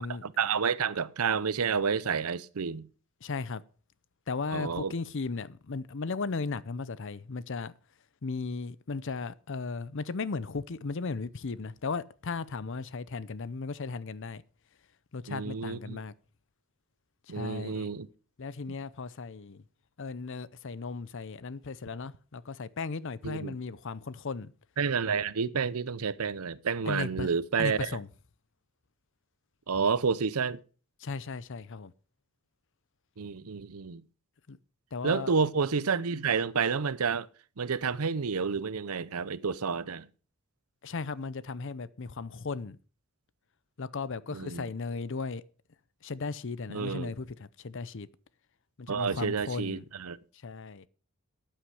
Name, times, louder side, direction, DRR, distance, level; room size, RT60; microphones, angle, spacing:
voice 1, 0.2-2.9 4.5-4.9 15.3-16.0 17.3-18.1 23.2-23.5 24.8-28.0 29.7-30.6 33.2-34.0 35.0-37.3 37.6-40.1 44.3-44.7 46.7-47.1 48.9-50.2, right 5 dB, 80° right, 0.7 m, -30 dB
voice 2, 3.2-3.6 4.3-7.7 8.2-14.4 15.1-16.1 17.3-17.9 18.4-19.6 20.0-24.5 26.8-27.3 27.6-28.1 31.0-31.9 34.5-34.6 34.9-35.3 40.8-42.8 43.8-45.4 46.0-48.1 48.8-49.8 50.4-50.8, left 4 dB, 60° left, 0.6 m, -36 dB
13.0 x 9.0 x 4.9 m
head